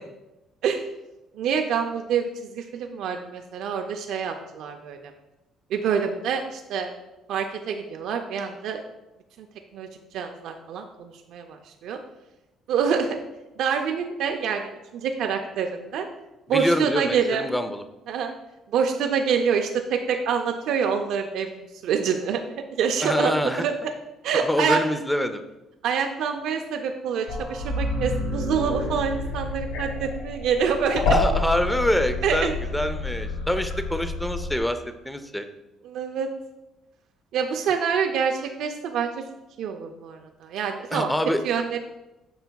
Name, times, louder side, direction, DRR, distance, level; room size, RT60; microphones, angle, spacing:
voice 1, 1.4-5.1 5.7-6.9 7.3-8.8 9.7-9.9 10.1-12.0 12.7-13.2 13.6-16.1 16.5-17.4 18.1-18.3 18.7-21.5 21.8-22.4 22.8-23.9 24.2-24.8 25.8-31.1 32.2-32.5 35.8-36.3 37.3-39.2 39.6-41.1 41.4-41.8, right 6 dB, 70° right, 4 dB, 0.4 m, -26 dB
voice 2, 16.5-17.8 23.0-23.6 24.3-25.4 31.1-34.8 35.1-35.5 40.9-41.4, left 1 dB, 5° left, 9 dB, 0.4 m, -25 dB
sound 1, 27.3-34.6, left 2 dB, 80° left, 1.0 m, -28 dB
7.8 x 5.7 x 2.3 m, 0.99 s
cardioid pair, 130°, 0 cm